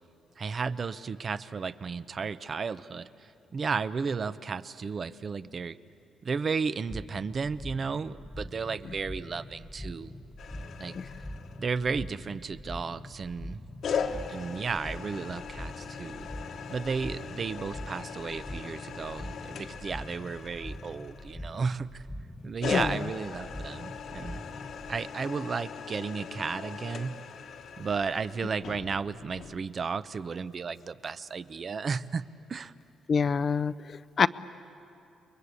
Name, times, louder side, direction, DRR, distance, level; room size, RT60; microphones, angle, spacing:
voice 1, 0.4-5.8 6.2-10.1 10.8-11.0 11.6-13.6 14.0-16.3 16.7-22.0 22.4-24.4 24.9-27.1 27.8-32.2 32.5-32.7, right 5 dB, 40° right, 14 dB, 0.7 m, -33 dB
sound 1, 6.9-25.0, left 1 dB, 10° left, 0.9 m, -43 dB
sound 2, 10.4-11.9 13.8-21.7 22.6-29.6, left 6 dB, 70° left, 1.5 m, -39 dB
voice 2, 33.1-34.3, left 6 dB, 45° left, 14 dB, 0.6 m, -26 dB
30.0 x 22.5 x 8.3 m, 2.7 s
cardioid pair, 90°, 0 cm